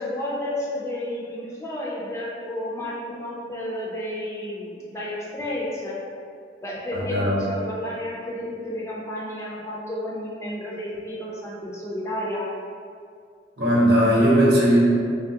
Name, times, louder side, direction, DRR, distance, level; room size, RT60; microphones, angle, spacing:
voice 1, 0.0-6.0 6.6-12.4, left 1 dB, 15° left, -5 dB, 0.4 m, -31 dB
voice 2, 6.9-7.5 13.6-14.8, equal, 65° right, -6 dB, 0.8 m, -18 dB
3.1 x 2.3 x 2.7 m, 2.3 s
head